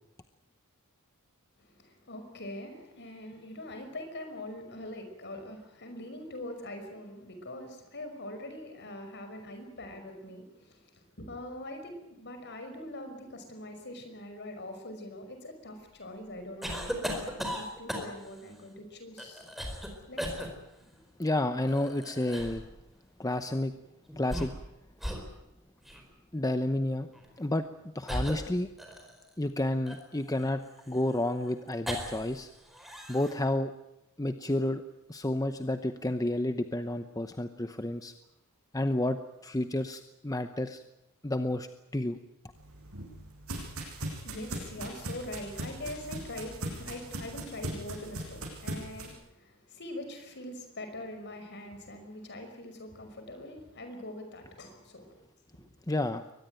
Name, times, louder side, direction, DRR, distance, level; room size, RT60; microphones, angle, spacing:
voice 1, 1.6-19.5 20.1-20.5 20.8-20.9 44.0-55.2, left 1 dB, 55° left, 7 dB, 5.6 m, -43 dB
sound 1, 16.6-18.4 19.2-19.9 20.2-20.5 21.7-22.7 24.1-24.7 25.0-25.3 25.8-26.0 27.1-27.3 28.1-29.3 29.9-32.4 32.6-33.3, equal, ahead, 4.7 m, -37 dB
voice 2, 21.2-22.6 23.2-23.7 24.2-24.5 26.3-27.1 27.4-27.7 27.9-28.7 29.4-32.5 33.1-33.7 34.2-34.8 35.1-38.1 38.7-40.8 41.2-41.7 41.9-42.2 55.9-56.2, left 1 dB, 15° left, 9 dB, 0.8 m, -30 dB
sound 2, 42.5-49.1, right 1 dB, 75° right, 7.4 m, -39 dB
23.0 x 20.0 x 9.2 m, 0.88 s
head